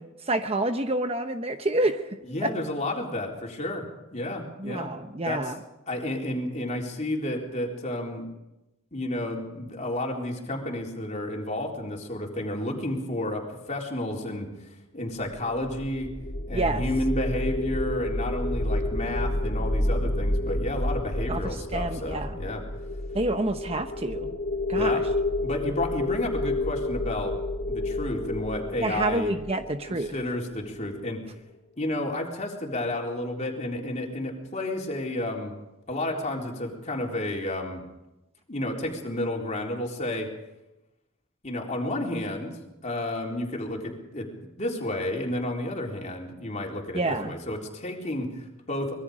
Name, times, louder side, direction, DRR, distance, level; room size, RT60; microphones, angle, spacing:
voice 1, 0.2-2.1 2.4-2.5 4.6-5.6 16.5-16.8 21.3-21.4 21.7-22.4 23.1-24.4 24.7-25.0 28.8-30.1 46.9-47.3, right 2 dB, 30° right, 7 dB, 0.9 m, -28 dB
voice 2, 2.3-3.9 4.1-4.9 5.2-5.5 5.9-8.3 8.9-14.5 14.9-16.1 16.5-22.6 24.8-25.0 25.4-27.3 27.7-29.3 30.1-31.2 31.8-35.6 35.9-37.8 38.5-40.3 41.4-44.3 44.6-49.0, left 1 dB, 35° left, 0 dB, 4.0 m, -31 dB
sound 1, 15.3-30.5, left 1 dB, 60° left, 2.6 m, -29 dB
25.0 x 21.5 x 5.1 m, 0.96 s
head